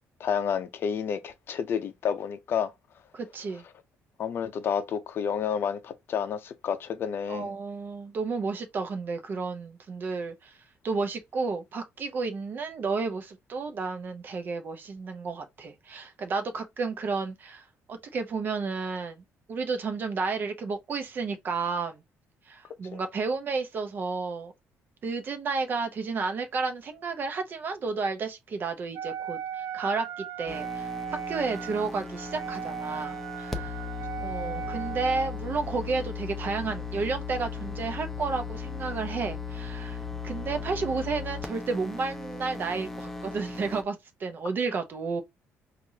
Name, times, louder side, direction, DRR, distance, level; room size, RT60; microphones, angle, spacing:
voice 1, 0.2-2.7 4.2-7.5 22.9-23.0, left 7 dB, 50° left, 0.5 m, -30 dB
voice 2, 3.1-3.6 7.3-10.6 10.8-22.0 22.5-24.5 25.0-30.9 31.3-33.8 34.2-40.0 40.2-45.2, right 4 dB, 40° right, 0.7 m, -32 dB
Wind instrument woodwind instrument, 28.9-35.4, right 9 dB, 90° right, 0.3 m, -37 dB
sound 1, 30.5-43.8, left 5 dB, 5° left, 0.7 m, -37 dB
4.6 x 2.5 x 2.7 m
cardioid pair, 140°, 5 cm